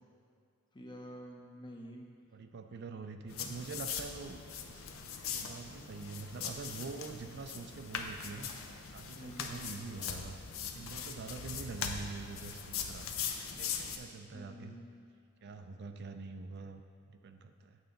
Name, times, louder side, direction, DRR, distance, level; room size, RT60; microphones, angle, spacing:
voice 1, 0.7-2.1 9.1-9.6 14.3-15.0, equal, 25° left, 1 dB, 0.8 m, -49 dB
voice 2, 2.3-8.5 8.9-10.4 10.7-13.2 13.5-14.7 15.4-16.8 17.1-17.8, right 4 dB, 55° right, 7 dB, 0.4 m, -45 dB
sound 1, 3.3-14.0, left 6 dB, 85° left, 0.6 m, -41 dB
8.9 x 6.8 x 3.9 m, 2.4 s
head